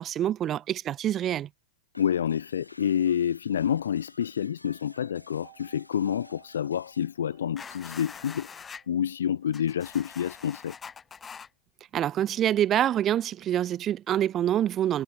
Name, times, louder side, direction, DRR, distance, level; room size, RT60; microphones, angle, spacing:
voice 1, 0.0-1.5 11.9-15.0, right 11 dB, 30° right, 0.5 m, -26 dB
sound 1, 1.9-7.2, left 2 dB, 85° left, 2.7 m, -55 dB
voice 2, 2.0-10.7, left 9 dB, 65° left, 0.4 m, -28 dB
sound 2, 4.7-11.0 11.3-11.4, right 22 dB, 50° right, 5.6 m, -60 dB
sound 3, 7.6-8.8 9.5-11.5, left 6 dB, 20° left, 1.6 m, -44 dB
figure-of-eight pair, 90°, 0 cm